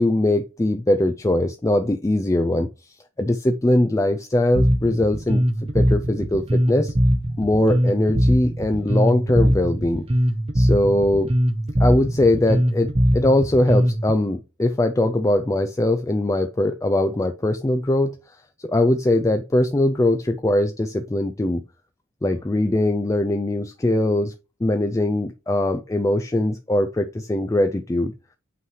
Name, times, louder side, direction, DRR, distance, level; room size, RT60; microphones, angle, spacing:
voice 1, 0.0-5.4 5.7-6.9 7.4-10.0 10.5-11.3 11.8-18.1 18.6-21.6 22.2-24.3 24.6-28.1, left 1 dB, 15° left, 7 dB, 0.4 m, -21 dB
Bass guitar, 4.5-14.1, equal, 30° right, 0.8 m, -21 dB
8.4 x 3.1 x 5.5 m, 0.30 s
head